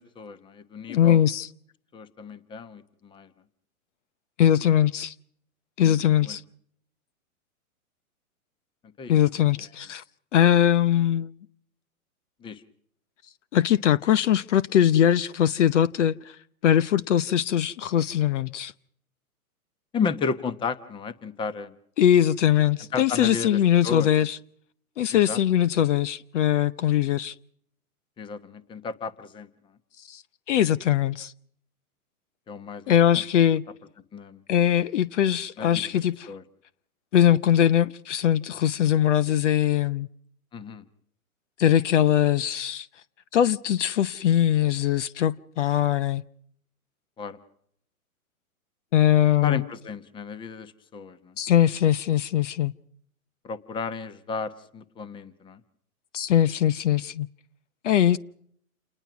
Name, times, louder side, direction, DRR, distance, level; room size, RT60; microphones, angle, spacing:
voice 1, 0.0-1.2 1.9-3.3 5.8-5.9 6.2-6.4 9.0-9.2 12.4-12.6 19.9-21.7 22.9-24.1 25.1-25.4 28.2-29.5 32.5-33.2 34.1-34.4 35.6-35.9 36.3-36.4 40.5-40.8 47.2-47.4 49.4-51.4 53.4-55.6, left 5 dB, 10° left, 1.0 m, -33 dB
voice 2, 0.9-1.5 4.4-5.1 5.8-6.4 9.1-10.0 10.3-11.3 13.5-16.3 16.6-18.7 22.0-24.4 25.0-27.3 30.1-30.2 30.5-31.3 32.9-33.6 34.5-36.3 37.1-40.1 41.6-42.9 43.3-46.2 48.9-49.6 51.4-52.7 56.1-57.3 57.8-58.2, left 10 dB, 55° left, 0.8 m, -21 dB
28.5 x 20.0 x 6.1 m
hypercardioid pair, 140°, 44 cm